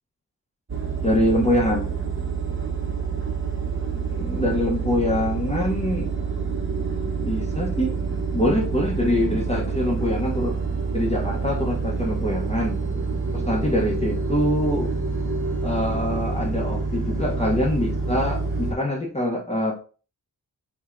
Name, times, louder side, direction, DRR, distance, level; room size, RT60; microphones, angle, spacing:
sound 1, 0.7-18.7, right 4 dB, 30° right, 0.7 m, -27 dB
voice 1, 1.0-1.9 3.9-6.1 6.9-7.9 8.3-10.5 10.9-12.8 13.3-14.9 15.6-19.7, left 1 dB, 15° left, -2 dB, 0.7 m, -24 dB
4.3 x 2.2 x 2.4 m, 0.37 s
cardioid pair, 55°, 41 cm